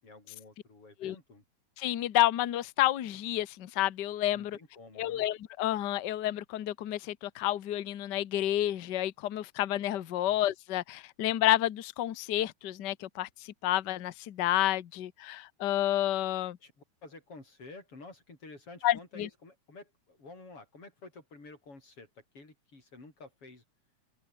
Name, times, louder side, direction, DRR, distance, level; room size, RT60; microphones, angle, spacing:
voice 1, 0.0-1.4 4.3-5.3 10.2-10.4 16.6-23.6, left 3 dB, 45° left, 7.9 m, -51 dB
voice 2, 1.8-4.6 5.0-16.6 18.8-19.3, left 13 dB, 85° left, 0.9 m, -30 dB
open air
omnidirectional pair, 3.5 m